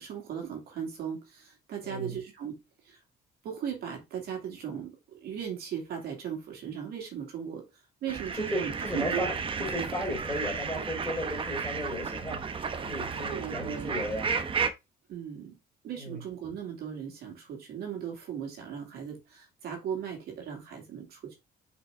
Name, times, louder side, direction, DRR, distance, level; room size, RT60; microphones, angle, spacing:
voice 1, 0.0-2.6 2.8-3.0 3.4-7.7 8.0-9.3 9.8-9.9 13.3-13.9 15.1-15.6 15.8-21.3, right 8 dB, 70° right, 2.4 m, -37 dB
voice 2, 1.8-2.2 8.4-9.3 9.6-14.3 16.0-16.2, left 1 dB, 15° left, 3.7 m, -35 dB
sound 1, 8.1-14.7, right 5 dB, 30° right, 0.9 m, -33 dB
6.1 x 5.2 x 3.6 m
cardioid pair, 110°, 17 cm